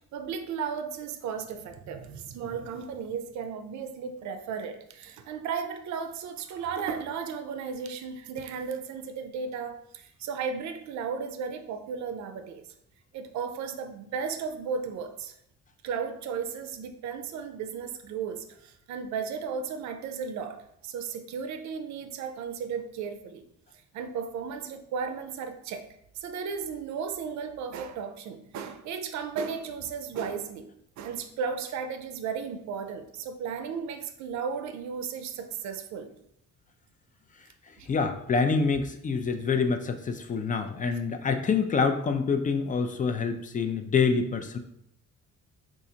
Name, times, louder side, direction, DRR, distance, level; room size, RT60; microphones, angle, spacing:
voice 1, 0.1-12.6 13.1-15.3 15.8-23.4 23.9-25.9 26.2-30.7 31.0-36.1 37.8-37.9, right 6 dB, 65° right, 7 dB, 0.5 m, -35 dB
voice 2, 37.9-44.6, left 5 dB, 25° left, 7 dB, 0.4 m, -26 dB
3.8 x 2.5 x 2.7 m, 0.73 s
cardioid pair, 90°, 30 cm